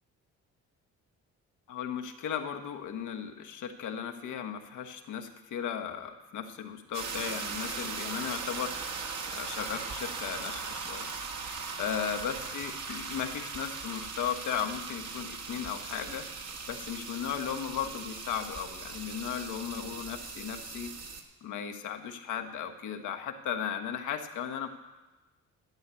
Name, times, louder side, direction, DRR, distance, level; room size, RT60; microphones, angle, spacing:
voice 1, 1.7-8.7 9.1-11.1 11.5-16.2 16.7-20.9 21.4-24.7, left 8 dB, 80° left, 6 dB, 1.3 m, -36 dB
sound 1, 6.9-21.2, right 5 dB, 60° right, 1.7 m, -39 dB
12.0 x 8.2 x 8.2 m, 1.1 s
cardioid pair, 90°, 30 cm